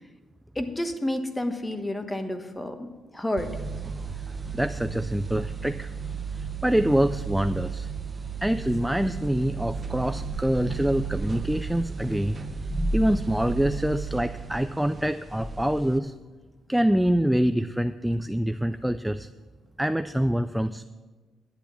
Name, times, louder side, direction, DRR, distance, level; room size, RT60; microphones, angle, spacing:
voice 1, 0.5-3.5, left 1 dB, 15° left, 7 dB, 1.1 m, -30 dB
sound 1, 3.4-16.0, right 4 dB, 25° right, 0.8 m, -33 dB
voice 2, 4.5-5.9 6.3-7.9 8.4-12.4 12.9-16.1 16.7-19.3 19.8-20.8, equal, 5° right, 10 dB, 0.3 m, -25 dB
10.5 x 8.2 x 5.8 m, 1.3 s
cardioid pair, 90°, 0 cm